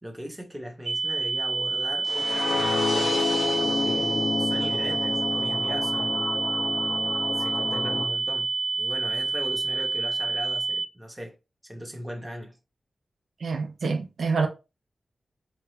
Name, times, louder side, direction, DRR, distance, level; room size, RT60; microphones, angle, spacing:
voice 1, 0.0-3.3 3.8-6.3 7.4-8.5 8.7-11.3 11.7-12.6, equal, 5° right, 0.7 m, -38 dB
sound 1, 0.9-10.9, right 3 dB, 45° right, 0.8 m, -28 dB
sound 2, 2.0-8.0, left 4 dB, 80° left, 0.5 m, -29 dB
voice 2, 13.4-14.5, right 4 dB, 80° right, 0.5 m, -26 dB
2.9 x 2.3 x 3.1 m
wide cardioid pair, 150°, 0 cm